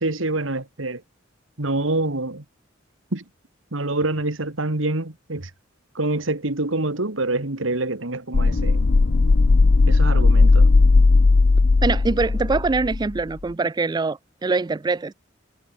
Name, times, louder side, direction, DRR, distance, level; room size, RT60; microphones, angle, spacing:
voice 1, 0.0-1.0 1.6-2.4 3.1-3.2 3.7-5.5 6.0-8.8 9.9-10.7, right 2 dB, 85° right, 2.3 m, -26 dB
sound 1, 8.3-13.2, left 3 dB, 60° left, 0.6 m, -16 dB
voice 2, 11.8-15.1, right 3 dB, 20° right, 0.3 m, -23 dB
head